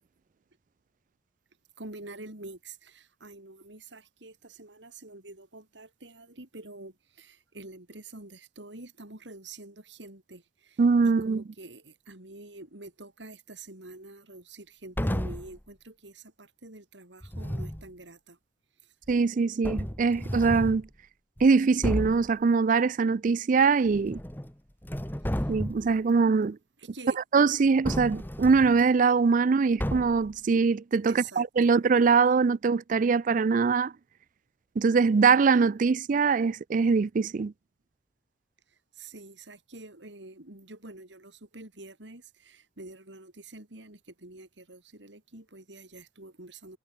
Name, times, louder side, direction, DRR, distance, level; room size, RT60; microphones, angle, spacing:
voice 1, 1.8-18.4 18.8-18.9 25.2-25.5 26.8-27.2 31.1-31.4 38.7-46.8, right 2 dB, 80° right, 3.9 m, -47 dB
voice 2, 10.8-11.4 19.1-20.9 21.4-24.2 25.5-26.6 27.3-33.9 34.8-37.5, right 5 dB, 45° right, 0.4 m, -23 dB
sound 1, 15.0-15.6 17.2-17.9 19.1-19.2 19.6-20.8 21.4-21.5 21.8-22.3 23.9-24.5 24.8-25.9 27.8-28.8 29.8-30.3, equal, 10° left, 1.8 m, -32 dB
head